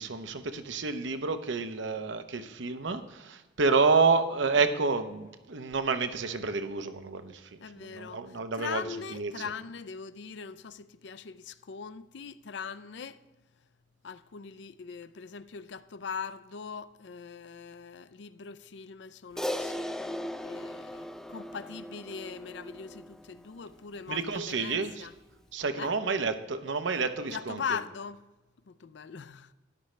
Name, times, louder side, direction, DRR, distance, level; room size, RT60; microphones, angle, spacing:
voice 1, 0.0-7.4 7.8-8.8 9.1-9.3 24.1-25.1 25.5-27.6, right 4 dB, 80° right, 0.8 m, -29 dB
voice 2, 7.6-13.2 14.0-25.1 25.7-25.9 27.2-28.2 28.7-29.5, left 6 dB, 70° left, 0.5 m, -41 dB
Crash cymbal, 19.4-23.9, left 1 dB, 5° left, 0.4 m, -38 dB
13.0 x 10.0 x 3.2 m
head